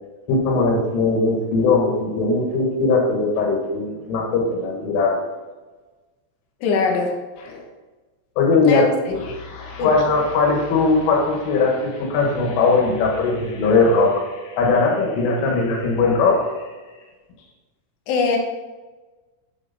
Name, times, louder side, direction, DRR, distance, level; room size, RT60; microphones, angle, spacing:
voice 1, 0.3-5.2 7.4-7.6 8.4-16.5, left 3 dB, 90° left, -1 dB, 4.2 m, -20 dB
voice 2, 6.6-7.1 8.7-8.9 9.3-9.4 9.8-9.9 18.1-18.4, left 4 dB, 70° left, 1 dB, 3.1 m, -21 dB
9.8 x 7.8 x 4.2 m, 1.2 s
omnidirectional pair, 5.6 m